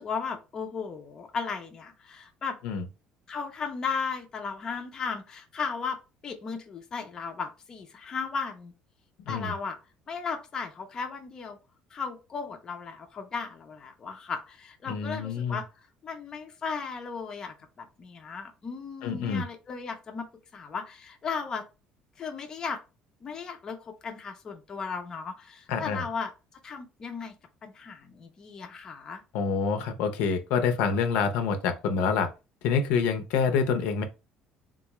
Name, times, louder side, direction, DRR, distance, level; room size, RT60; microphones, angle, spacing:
voice 1, 0.0-2.6 3.3-6.0 6.2-8.7 9.3-9.8 10.1-11.6 11.9-20.3 20.5-21.6 22.2-22.8 23.2-26.3 26.6-27.3 27.6-29.2, left 5 dB, 25° left, 0.5 m, -36 dB
voice 2, 14.9-15.6 19.0-19.4 25.7-26.0 29.3-32.3 32.6-34.0, left 5 dB, 75° left, 0.6 m, -27 dB
3.6 x 2.3 x 2.9 m
cardioid pair, 170°, 3 cm